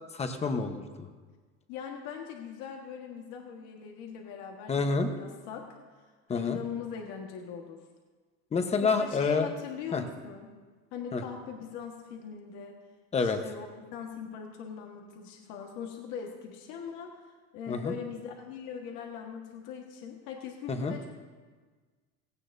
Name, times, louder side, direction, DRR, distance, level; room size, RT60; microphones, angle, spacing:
voice 1, 0.1-1.1 4.7-5.1 6.3-6.6 8.5-9.5 9.9-10.0 11.1-11.2 13.1-13.4 17.7-17.9 20.7-21.0, left 4 dB, 20° left, 7 dB, 1.0 m, -28 dB
voice 2, 1.7-5.7 6.3-7.8 8.8-10.5 10.9-12.8 13.2-17.2 17.5-21.1, left 7 dB, 85° left, 1 dB, 1.6 m, -41 dB
17.0 x 16.5 x 2.7 m, 1.4 s
cardioid pair, 145°, 30 cm